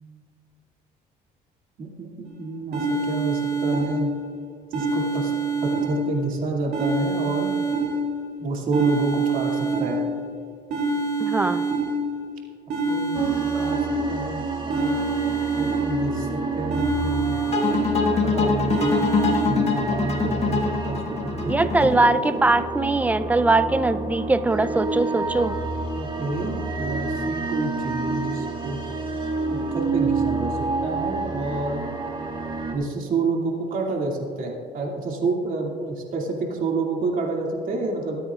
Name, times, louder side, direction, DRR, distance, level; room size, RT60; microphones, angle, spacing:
voice 1, 1.8-4.1 4.7-5.3 5.6-7.5 8.4-10.0 12.8-13.8 14.1-15.0 15.6-17.4 18.2-19.1 19.4-21.9 26.0-28.8 29.5-30.5 30.8-31.8 32.7-38.2, right 3 dB, 55° right, -1 dB, 2.6 m, -28 dB
sound 1, 2.3-2.4 2.7-4.3 4.7-6.3 6.7-8.3 8.7-10.3 10.7-12.3 12.7-14.3 14.7-16.3 16.7-18.3 18.7-19.5, right 3 dB, 70° right, 2.5 m, -26 dB
voice 2, 11.2-11.7 21.5-25.5, right 2 dB, 10° right, 11 dB, 0.5 m, -21 dB
sound 2, 13.1-32.7, right 3 dB, 30° right, 1.8 m, -29 dB
sound 3, 17.5-22.6, left 4 dB, 40° left, 1.7 m, -24 dB
23.0 x 9.3 x 2.5 m, 2.2 s
cardioid pair, 110°, 17 cm